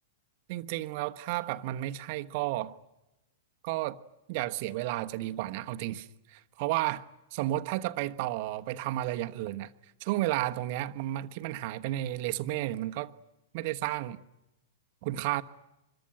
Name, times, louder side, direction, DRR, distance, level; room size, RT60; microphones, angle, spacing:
voice 1, 0.5-2.8 3.6-4.0 4.3-7.0 7.3-9.7 10.0-13.1 13.5-14.2 15.0-15.4, right 15 dB, 50° right, 1.2 m, -32 dB
25.5 x 22.5 x 9.0 m
figure-of-eight pair, 100°, 0 cm